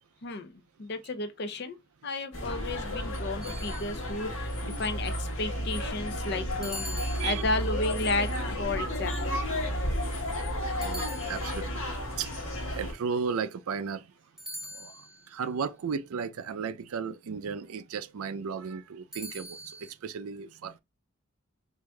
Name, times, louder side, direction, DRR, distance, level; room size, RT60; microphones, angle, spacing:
voice 1, 0.8-1.7 2.0-5.1 5.4-6.8 7.2-9.4, left 2 dB, 50° left, 0.5 m, -33 dB
sound 1, 2.3-12.9, equal, 70° left, 1.3 m, -32 dB
sound 2, 3.4-4.3 6.6-7.9 10.8-11.9 14.4-15.3 19.1-19.9, equal, ahead, 0.4 m, -43 dB
voice 2, 10.7-11.7 12.2-12.3 12.7-14.0 14.8-14.9 15.3-19.6 20.0-20.8, right 6 dB, 90° right, 0.4 m, -34 dB
4.7 x 2.6 x 2.2 m
head